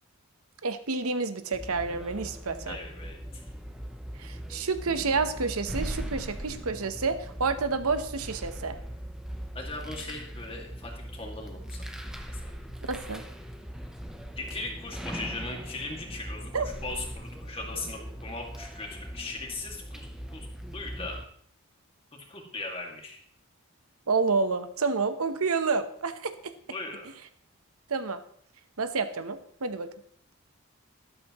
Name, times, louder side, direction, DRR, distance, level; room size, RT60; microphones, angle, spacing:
voice 1, 0.6-2.8 4.2-8.8 12.9-13.2 16.5-16.7 24.1-26.5 27.9-28.2 28.8-29.9, right 4 dB, 80° right, 10 dB, 0.9 m, -29 dB
sound 1, 1.5-21.2, equal, 5° right, 0.7 m, -40 dB
voice 2, 2.7-3.4 9.5-11.8 12.3-12.5 14.4-16.5 16.8-20.5 20.7-21.2 22.1-23.2 26.7-27.1, left 3 dB, 25° left, 1 dB, 2.1 m, -39 dB
13.5 x 12.0 x 3.1 m, 0.63 s
head